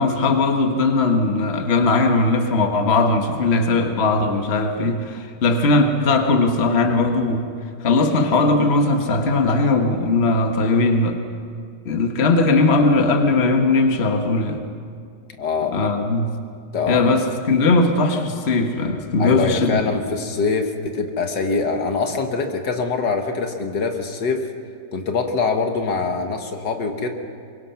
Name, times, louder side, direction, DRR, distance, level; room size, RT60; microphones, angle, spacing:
voice 1, 0.0-7.4 7.8-11.2 11.8-14.6 15.7-16.4 16.9-19.8, left 3 dB, 40° left, 4 dB, 1.5 m, -19 dB
voice 2, 15.4-15.9 16.7-17.2 19.2-24.5 24.9-27.1, left 4 dB, 75° left, 5 dB, 2.0 m, -23 dB
23.0 x 22.5 x 5.8 m, 2.2 s
omnidirectional pair, 1.9 m